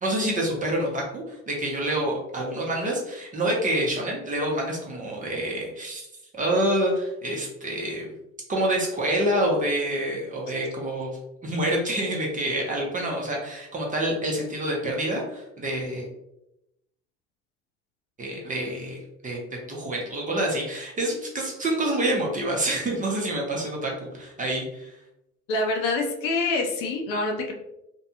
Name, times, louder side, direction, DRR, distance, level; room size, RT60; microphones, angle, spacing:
voice 1, 0.0-6.1 6.3-8.1 8.5-16.1 18.2-19.4 19.7-24.9, right 1 dB, 20° right, -1 dB, 0.7 m, -27 dB
voice 2, 25.5-27.5, left 2 dB, 55° left, 2 dB, 0.6 m, -26 dB
2.6 x 2.2 x 2.7 m, 0.86 s
hypercardioid pair, 80°, 41 cm